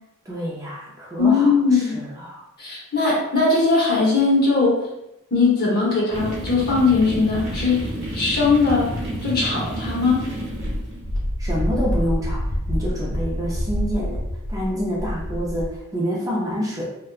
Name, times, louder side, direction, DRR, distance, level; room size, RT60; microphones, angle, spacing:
voice 1, 0.3-2.5 11.4-14.2 14.5-17.1, equal, 15° right, -5 dB, 0.4 m, -27 dB
voice 2, 1.2-2.0 2.6-4.8 5.3-7.8 8.1-8.9 9.2-10.3, left 4 dB, 45° left, -4 dB, 0.8 m, -19 dB
sound 1, 6.1-11.2, right 1 dB, 50° right, 0.8 m, -30 dB
Wind, 10.5-15.8, equal, 65° left, 0.4 m, -26 dB
2.6 x 2.2 x 2.3 m, 0.86 s
head